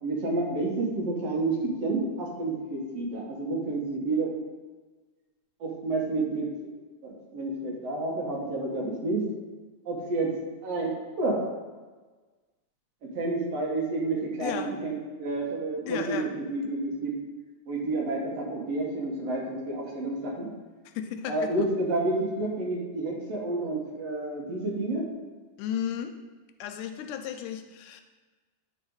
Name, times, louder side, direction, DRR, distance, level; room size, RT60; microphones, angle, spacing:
voice 1, 0.0-4.3 5.6-6.5 7.0-9.2 9.9-10.3 10.6-11.4 13.0-17.1 17.7-20.5 21.3-25.1, right 2 dB, 60° right, -2 dB, 2.1 m, -30 dB
voice 2, 14.4-14.7 15.9-16.3 16.6-16.7 20.9-21.7 25.6-26.2 26.6-28.0, left 9 dB, 85° left, 7 dB, 2.1 m, -34 dB
9.9 x 4.2 x 4.7 m, 1.4 s
omnidirectional pair, 3.6 m